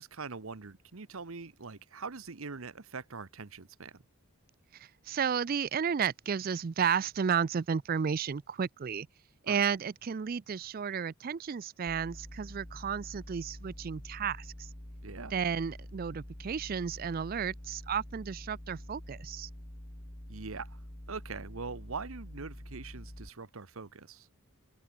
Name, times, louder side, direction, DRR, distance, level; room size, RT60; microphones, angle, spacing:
voice 1, 0.0-4.0 9.4-9.6 15.0-15.3 20.3-20.8 21.1-24.3, right 4 dB, 70° right, 1.0 m, -43 dB
voice 2, 4.7-9.1 9.5-14.7 15.3-19.5, right 7 dB, 40° right, 0.4 m, -33 dB
sound 1, 11.9-23.3, equal, 30° left, 3.1 m, -47 dB
open air
head